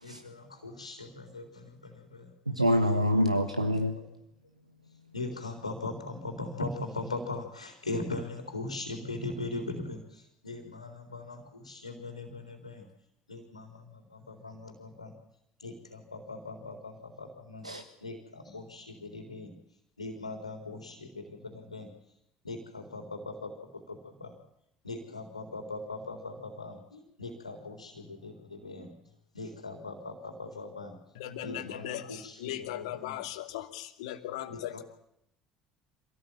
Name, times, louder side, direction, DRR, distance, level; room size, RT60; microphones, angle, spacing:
voice 1, 0.0-2.3 2.9-3.2 5.1-12.8 13.3-15.1 15.6-19.5 20.0-21.9 22.4-24.3 24.8-28.9 29.3-31.0 31.4-33.2 34.5-34.8, left 2 dB, 85° left, 4 dB, 3.8 m, -40 dB
voice 2, 2.5-4.0 17.6-17.8, equal, 90° right, 6 dB, 1.5 m, -26 dB
voice 3, 31.1-34.8, left 12 dB, 65° left, 6 dB, 2.7 m, -38 dB
26.5 x 18.0 x 9.1 m, 0.75 s
figure-of-eight pair, 60°, 3 cm